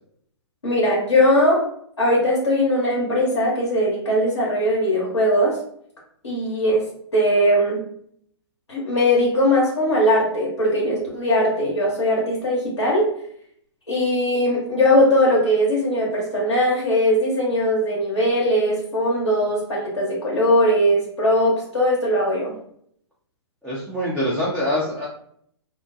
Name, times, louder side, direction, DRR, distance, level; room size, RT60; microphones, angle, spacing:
voice 1, 0.6-1.6 2.0-5.6 6.2-6.9 7.1-7.8 8.7-13.1 13.9-22.5, equal, 90° left, -5 dB, 1.0 m, -20 dB
voice 2, 23.6-25.1, left 1 dB, ahead, -9 dB, 0.5 m, -24 dB
2.4 x 2.1 x 2.6 m, 0.66 s
hypercardioid pair, 120°, 14 cm